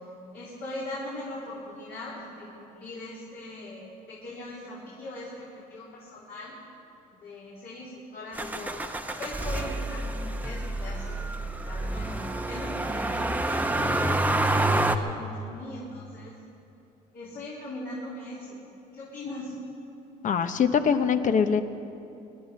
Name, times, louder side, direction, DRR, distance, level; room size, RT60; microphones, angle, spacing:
voice 1, 0.3-6.6 7.2-11.3 11.6-16.4 17.1-18.6 18.9-19.6, left 1 dB, 65° left, -7 dB, 3.8 m, -40 dB
Motor vehicle (road), 8.4-15.0, right 2 dB, 10° right, 0.8 m, -28 dB
voice 2, 20.2-21.6, left 6 dB, 50° left, 9 dB, 1.0 m, -23 dB
24.0 x 11.0 x 5.3 m, 2.7 s
cardioid pair, 95°, 17 cm